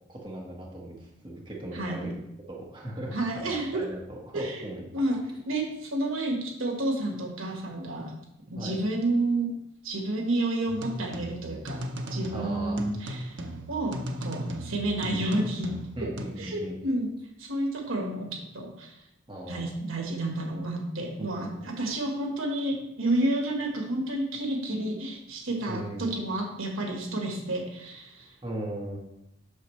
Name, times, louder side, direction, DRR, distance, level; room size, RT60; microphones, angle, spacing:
voice 1, 0.1-2.2 2.5-4.0 4.3-5.0 8.6-8.7 12.3-12.8 16.0-16.8 19.3-19.7 21.2-21.5 25.7-26.1 28.4-29.0, right 1 dB, 25° right, -3 dB, 1.4 m, -38 dB
voice 2, 1.7-2.1 3.1-3.9 4.3-4.7 4.9-8.2 8.5-9.5 9.8-11.8 12.1-13.4 13.7-15.7 16.0-16.1 16.4-17.1 17.4-19.0 19.5-28.3, right 1 dB, 80° right, 1 dB, 1.4 m, -30 dB
sound 1, 10.7-16.3, right 1 dB, 60° right, 0.7 m, -37 dB
8.3 x 6.3 x 3.2 m, 0.83 s
head